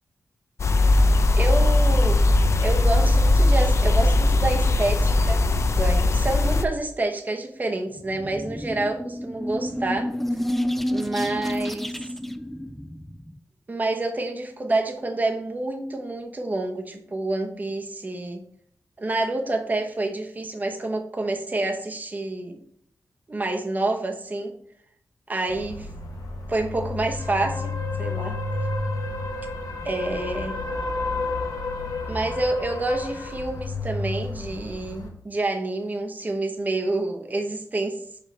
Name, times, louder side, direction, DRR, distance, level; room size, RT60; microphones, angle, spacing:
sound 1, 0.6-6.6, left 2 dB, 55° left, 0.5 m, -19 dB
voice 1, 1.3-2.2 2.5-10.1 10.9-12.1 13.7-18.4 19.0-22.6 23.3-24.5 25.3-25.9 26.5-28.4 29.8-30.6 32.1-38.2, right 2 dB, 30° right, 4 dB, 0.9 m, -28 dB
sound 2, 8.0-13.4, equal, 5° left, 0.3 m, -30 dB
sound 3, 25.5-35.1, left 3 dB, 85° left, 1.1 m, -31 dB
5.3 x 5.2 x 4.3 m, 0.66 s
wide cardioid pair, 100°, 6 cm